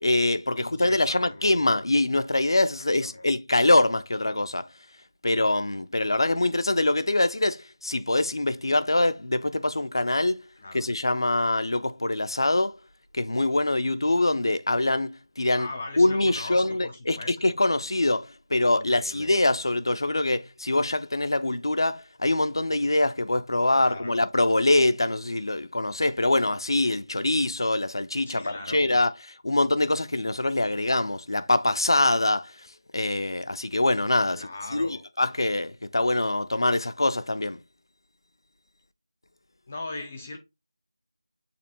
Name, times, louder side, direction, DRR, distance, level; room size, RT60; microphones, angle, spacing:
voice 1, 0.0-4.7 5.2-10.4 10.7-12.8 13.1-15.7 16.0-32.7 32.9-37.6, left 2 dB, 60° left, 0.6 m, -24 dB
voice 2, 0.6-1.5 3.0-3.3 10.6-10.9 15.6-17.3 18.6-19.3 23.8-24.2 28.3-28.9 34.3-35.0 39.7-40.4, left 2 dB, 15° left, 0.3 m, -39 dB
6.8 x 2.9 x 2.7 m
figure-of-eight pair, 175°, 3 cm